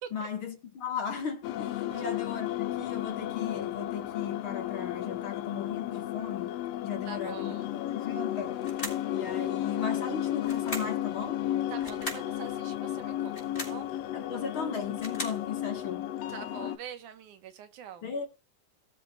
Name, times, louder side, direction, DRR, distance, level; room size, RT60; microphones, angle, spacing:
voice 1, 0.1-8.6 9.1-11.5 14.1-16.1 18.0-18.3, left 7 dB, 45° left, 2.2 m, -36 dB
sound 1, 1.4-16.8, left 12 dB, 70° left, 1.6 m, -34 dB
voice 2, 7.1-7.7 11.7-13.9 16.3-18.1, right 9 dB, 80° right, 2.8 m, -45 dB
sound 2, 8.6-9.1 10.4-11.0 11.8-12.3 13.2-13.8 14.7-15.4, left 1 dB, 20° left, 5.5 m, -38 dB
19.5 x 7.6 x 2.5 m
omnidirectional pair, 3.5 m